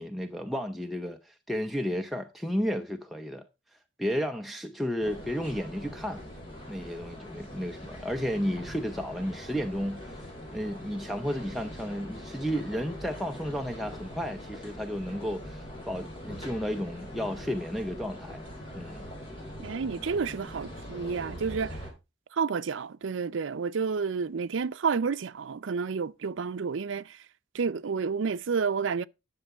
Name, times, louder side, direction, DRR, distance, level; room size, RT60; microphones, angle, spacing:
voice 1, 0.0-3.4 4.0-6.2 6.7-10.1 10.5-18.4 18.7-19.1, equal, ahead, 0.6 m, -32 dB
sound 1, 5.0-21.9, equal, 30° left, 4.2 m, -42 dB
voice 2, 19.6-21.8 22.3-27.2 27.5-29.0, right 5 dB, 80° right, 0.5 m, -30 dB
10.5 x 6.9 x 4.8 m
head